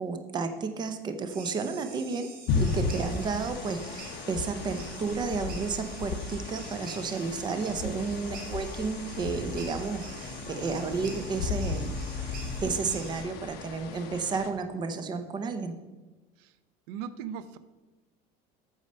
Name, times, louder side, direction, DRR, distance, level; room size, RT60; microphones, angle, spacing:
voice 1, 0.0-2.3 2.6-15.7, right 4 dB, 20° right, 9 dB, 0.7 m, -32 dB
sound 1, 1.3-13.2, right 4 dB, 50° right, 2.0 m, -47 dB
sound 2, 2.5-14.5, left 5 dB, 60° left, 1.1 m, -35 dB
Bowed string instrument, 9.8-14.2, left 6 dB, 30° left, 1.4 m, -46 dB
voice 2, 16.9-17.6, right 8 dB, 80° right, 14 dB, 0.5 m, -38 dB
8.5 x 6.4 x 5.4 m, 1.2 s
cardioid pair, 155°, 19 cm